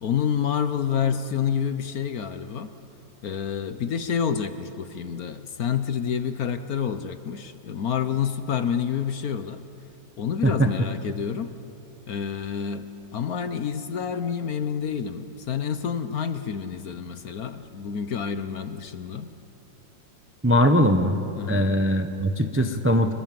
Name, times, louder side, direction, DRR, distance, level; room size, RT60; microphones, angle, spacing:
voice 1, 0.0-2.7 3.2-9.6 10.2-11.5 12.1-12.9 13.1-19.3 21.4-21.7, left 7 dB, 60° left, 10 dB, 1.2 m, -28 dB
voice 2, 20.4-21.2 21.5-23.1, equal, 10° right, 6 dB, 0.6 m, -21 dB
27.0 x 20.5 x 7.6 m, 2.7 s
omnidirectional pair, 2.0 m